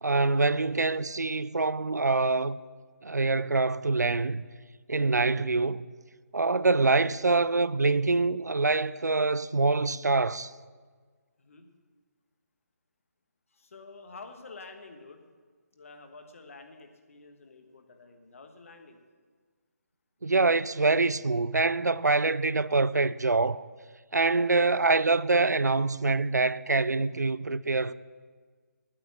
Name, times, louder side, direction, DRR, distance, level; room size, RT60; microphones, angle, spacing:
voice 1, 0.0-2.6 3.0-4.4 4.9-5.9 6.3-10.5 20.2-23.6 24.1-27.9, right 3 dB, 80° right, 0.4 m, -25 dB
voice 2, 11.4-11.7 13.5-15.2 15.7-19.0, left 3 dB, 55° left, 1.4 m, -49 dB
11.0 x 9.0 x 6.4 m
figure-of-eight pair, 145°, 9 cm